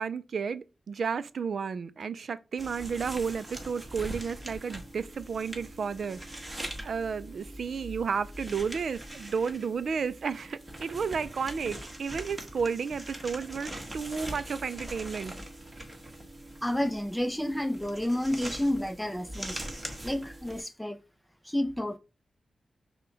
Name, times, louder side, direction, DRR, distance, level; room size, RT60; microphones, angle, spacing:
voice 1, 0.0-6.4 6.8-15.3, right 6 dB, 70° right, 0.4 m, -32 dB
sound 1, 2.6-20.6, right 1 dB, 20° right, 1.3 m, -42 dB
voice 2, 16.6-19.6 20.0-21.0 21.4-22.0, left 1 dB, 5° left, 0.5 m, -30 dB
5.4 x 2.2 x 3.9 m
cardioid pair, 80°, 0 cm